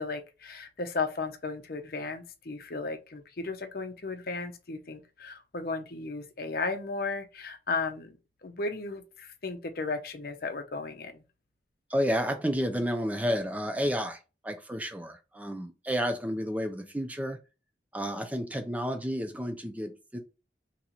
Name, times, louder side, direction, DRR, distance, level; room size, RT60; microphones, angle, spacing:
voice 1, 0.0-11.2, left 3 dB, 55° left, 0.6 m, -35 dB
voice 2, 11.9-17.4 17.9-20.2, equal, 10° right, 0.4 m, -31 dB
3.0 x 2.9 x 3.9 m
head